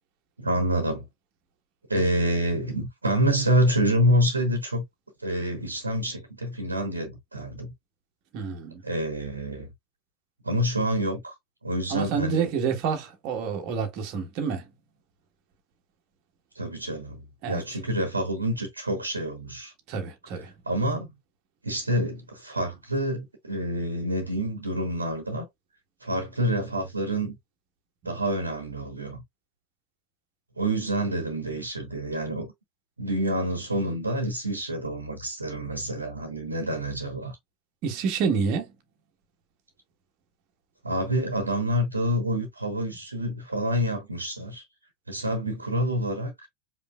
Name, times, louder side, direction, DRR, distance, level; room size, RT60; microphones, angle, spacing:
voice 1, 0.4-1.1 1.9-4.8 5.2-7.7 8.8-9.7 10.4-11.3 11.6-12.5 16.5-19.7 20.7-21.1 21.6-25.5 26.0-27.4 28.0-29.2 30.6-32.5 33.0-37.4 40.8-44.6 45.1-46.5, equal, 80° right, 1.2 m, -27 dB
voice 2, 8.3-8.8 11.9-14.7 17.4-17.6 19.9-20.5 37.8-38.7, right 6 dB, 40° right, 1.4 m, -28 dB
5.2 x 3.3 x 2.4 m
figure-of-eight pair, 90°, 0 cm